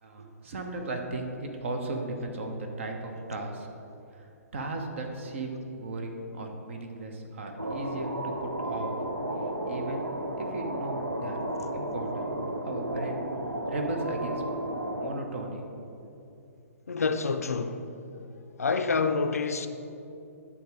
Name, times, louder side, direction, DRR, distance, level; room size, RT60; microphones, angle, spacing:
voice 1, 0.0-3.7 4.1-9.0 9.6-10.1 10.4-11.4 11.7-12.3 12.6-13.3 13.7-14.4 15.0-15.6, right 2 dB, 50° right, 1.0 m, -36 dB
sound 1, 7.6-15.2, right 1 dB, 80° right, 0.7 m, -33 dB
voice 2, 16.9-17.8 18.6-19.7, left 4 dB, 70° left, 0.4 m, -27 dB
10.5 x 3.6 x 4.8 m
figure-of-eight pair, 125°, 8 cm